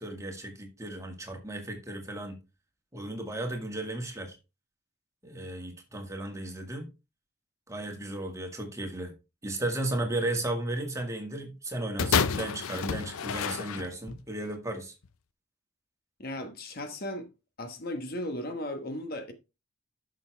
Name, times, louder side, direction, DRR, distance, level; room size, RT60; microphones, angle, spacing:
voice 1, 0.0-2.4 2.9-4.4 5.2-6.9 7.7-9.1 9.4-14.9, right 1 dB, 15° right, 1.9 m, -35 dB
sound 1, 12.0-14.2 15.0-15.1, left 6 dB, 75° left, 0.6 m, -29 dB
voice 2, 16.2-17.3 17.6-19.3, left 1 dB, 45° left, 1.2 m, -36 dB
11.5 x 6.4 x 3.4 m
head